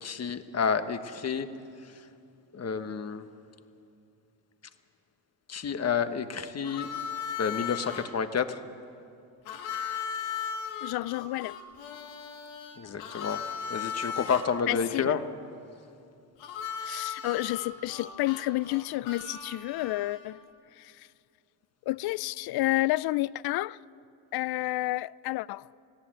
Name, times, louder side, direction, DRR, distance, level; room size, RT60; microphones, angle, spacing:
voice 1, 0.0-1.5 2.5-3.2 5.5-6.9 7.4-8.6 12.8-13.4 13.7-15.2, left 6 dB, 30° left, 1.2 m, -30 dB
Harmonica, 6.6-8.1 9.5-14.5 16.4-20.3, left 7 dB, 90° left, 2.1 m, -37 dB
voice 2, 10.8-11.6 14.7-15.1 16.8-20.4 20.7-21.1 21.9-23.8 24.3-25.7, left 18 dB, 55° left, 0.5 m, -30 dB
19.0 x 15.5 x 8.9 m
supercardioid pair, 90°, 48 cm